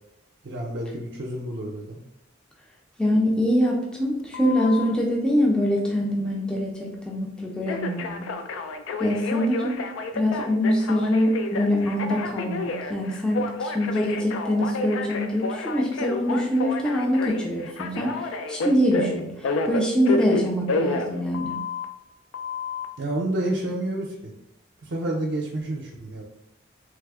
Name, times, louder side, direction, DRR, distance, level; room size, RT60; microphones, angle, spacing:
voice 1, 0.4-2.0 23.0-24.3 24.8-26.2, right 1 dB, 60° right, -2 dB, 0.5 m, -29 dB
voice 2, 3.0-8.3 9.0-9.8 10.1-21.6, equal, 5° left, -2 dB, 0.4 m, -24 dB
Telephone, 4.3-4.9 7.7-21.9 22.3-22.9, left 3 dB, 85° left, 0.3 m, -30 dB
3.2 x 2.0 x 3.5 m, 0.90 s
head